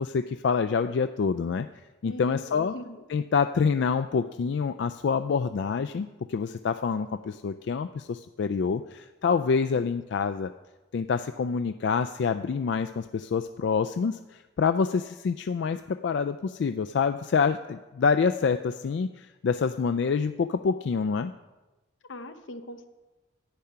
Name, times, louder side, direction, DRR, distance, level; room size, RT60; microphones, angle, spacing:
voice 1, 0.0-1.7 2.0-2.7 3.1-10.5 10.9-21.3, left 5 dB, 65° left, 9 dB, 0.3 m, -27 dB
voice 2, 2.0-3.0 22.0-22.9, left 1 dB, 85° left, 9 dB, 0.9 m, -41 dB
10.0 x 8.5 x 5.7 m, 1.1 s
head